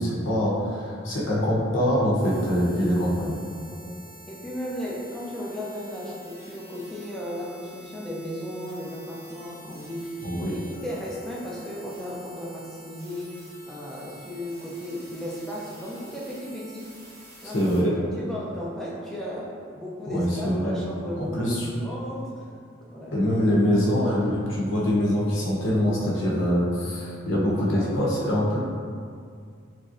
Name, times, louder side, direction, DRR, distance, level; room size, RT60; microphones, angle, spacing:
voice 1, 0.0-3.3 10.2-10.6 17.5-18.0 20.1-20.8 21.2-21.7 23.1-28.6, equal, 85° left, -5 dB, 0.7 m, -24 dB
sound 1, 2.2-17.8, right 1 dB, 50° right, 0.8 m, -48 dB
voice 2, 4.3-10.3 10.5-13.4 13.7-16.9 17.4-17.6 18.0-22.5 22.9-23.2 27.5-28.2, equal, ahead, -6 dB, 0.4 m, -35 dB
3.1 x 2.6 x 2.4 m, 2.2 s
head